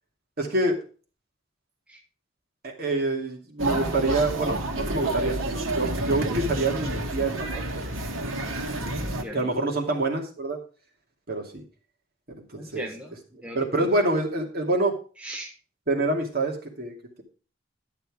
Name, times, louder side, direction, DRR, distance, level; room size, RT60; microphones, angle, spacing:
voice 1, 0.4-0.8 2.6-7.8 9.3-10.6 11.3-11.6 12.5-12.9 13.5-15.0 15.9-17.2, right 2 dB, 50° right, 2 dB, 2.5 m, -26 dB
sound 1, 3.6-9.2, right 1 dB, 80° right, 2.0 m, -29 dB
voice 2, 9.0-9.6 12.6-13.2 13.4-13.9 15.2-15.5, equal, 5° right, 1 dB, 1.2 m, -39 dB
11.5 x 6.7 x 4.8 m, 0.37 s
head